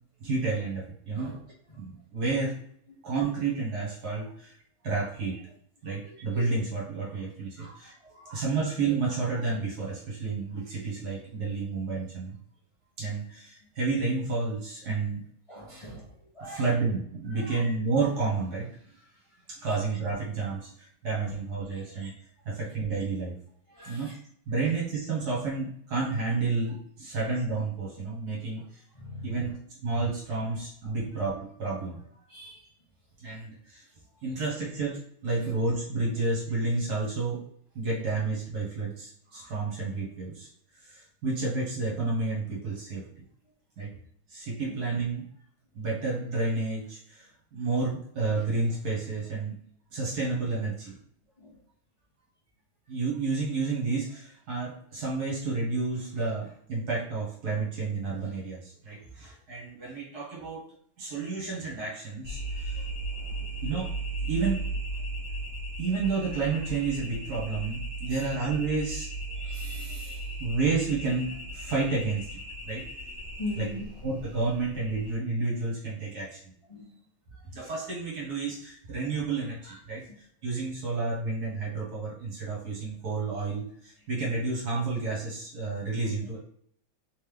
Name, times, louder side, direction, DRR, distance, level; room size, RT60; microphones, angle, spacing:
voice 1, 0.2-1.3 1.8-2.5 3.0-4.6 4.8-5.4 5.8-7.9 8.3-12.3 13.0-15.2 16.4-18.9 19.5-22.1 22.4-23.3 23.8-24.2 24.5-28.8 29.2-32.0 33.2-33.8 34.2-37.4 37.7-40.5 40.8-43.1 43.8-43.9 44.3-45.2 45.7-49.5 49.9-51.0 52.9-60.6 61.0-62.8 63.6-63.9 64.2-64.6 65.8-69.1 70.4-72.8 73.5-73.7 74.0-76.4 77.3-80.0 80.4-86.4, right 3 dB, 55° right, -4 dB, 1.6 m, -30 dB
voice 2, 8.1-8.4 15.5-16.1 16.3-16.7 17.4-17.6 23.7-24.0 29.0-29.2 32.3-32.6 39.3-39.5 51.4-51.5 69.4-70.2 73.4-73.8 76.7-76.9, left 2 dB, 35° left, -6 dB, 0.5 m, -40 dB
sound 1, 62.2-75.1, right 2 dB, 25° right, 1.4 m, -36 dB
3.7 x 3.3 x 3.5 m, 0.63 s
omnidirectional pair, 2.3 m